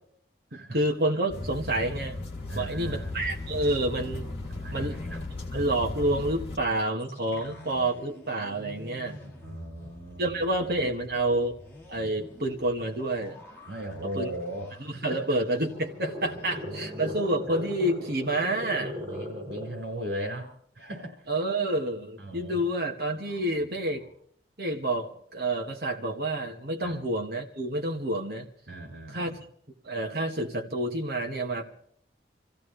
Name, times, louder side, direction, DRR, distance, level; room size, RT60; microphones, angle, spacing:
voice 1, 0.5-2.2 2.5-4.3 4.7-5.0 5.5-9.3 10.2-11.6 11.9-13.4 14.2-14.3 14.8-18.9 21.3-24.0 24.6-28.5 29.1-29.4 29.8-31.6, right 1 dB, 55° right, 2 dB, 1.8 m, -29 dB
sound 1, 1.3-6.6, left 2 dB, 30° left, 2.9 m, -36 dB
voice 2, 2.5-3.1 4.5-5.3 7.1-7.9 9.4-10.4 13.7-15.2 16.2-17.2 18.7-21.3 22.2-22.6 23.3-24.1 26.8-27.0 28.7-29.4, right 1 dB, 80° right, 2 dB, 5.7 m, -39 dB
sound 2, 7.0-16.0 16.3-16.5 16.9-17.2, left 1 dB, 15° left, 3.3 m, -49 dB
sound 3, 15.0-19.9, left 1 dB, 35° right, 7.0 m, -38 dB
26.0 x 15.5 x 3.4 m, 0.64 s
head